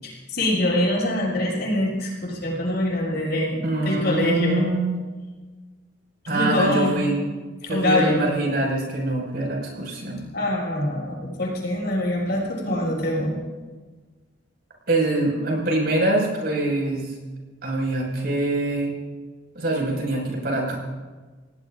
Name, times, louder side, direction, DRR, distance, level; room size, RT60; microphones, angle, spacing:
voice 1, 0.0-4.7 6.2-6.9 7.6-8.2 10.3-13.4, left 1 dB, 65° left, -4 dB, 6.9 m, -24 dB
voice 2, 3.6-5.1 6.3-7.1 7.7-10.3 14.9-17.1 17.6-19.0 19.5-20.8, right 1 dB, 60° right, -1 dB, 5.8 m, -24 dB
29.0 x 18.0 x 2.6 m, 1.3 s
head